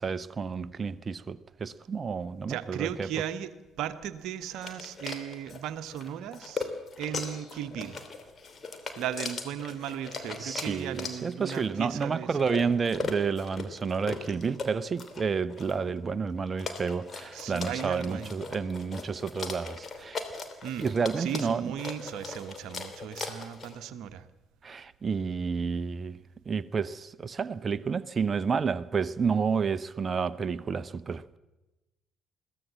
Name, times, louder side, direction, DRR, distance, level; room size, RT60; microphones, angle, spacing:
voice 1, 0.0-3.1 10.4-20.2 20.8-21.7 24.6-26.2 26.5-31.4, right 5 dB, 35° right, 0.8 m, -30 dB
voice 2, 2.4-3.5 3.8-6.7 7.0-8.0 9.0-12.3 17.3-18.4 20.6-20.9 21.2-24.3, right 10 dB, 60° right, 1.1 m, -36 dB
sound 1, 4.6-23.8, left 4 dB, 40° left, 2.9 m, -39 dB
22.0 x 16.0 x 7.5 m
figure-of-eight pair, 50°, 0 cm